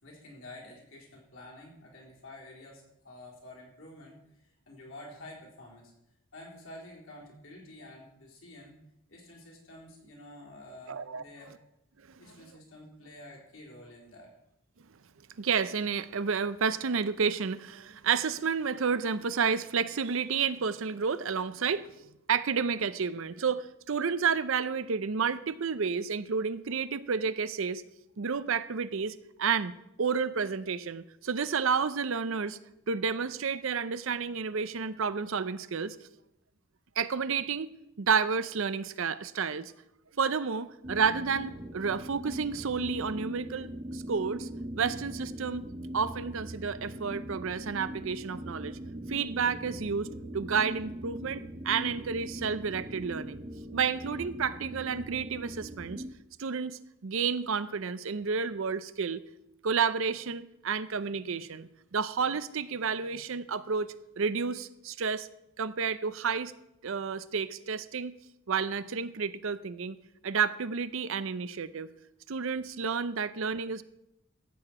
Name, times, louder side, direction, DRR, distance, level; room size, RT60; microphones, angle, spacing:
voice 1, 0.0-5.9 6.3-8.8 9.1-11.6 12.2-14.3, left 1 dB, 65° left, -3 dB, 3.9 m, -49 dB
voice 2, 10.9-11.2 15.4-21.9 22.3-27.8 28.2-29.7 30.0-32.6 32.9-36.0 37.0-37.7 38.0-39.7 40.2-44.5 44.7-45.7 45.9-48.8 49.1-50.1 50.3-53.4 53.7-56.0 56.4-59.2 59.6-65.3 65.6-66.5 66.8-68.1 68.5-70.0 70.2-71.9 72.3-73.8, right 6 dB, 65° right, 14 dB, 0.6 m, -30 dB
sound 1, 40.8-56.1, right 1 dB, 25° right, 0.7 m, -41 dB
14.5 x 8.6 x 4.9 m, 0.84 s
head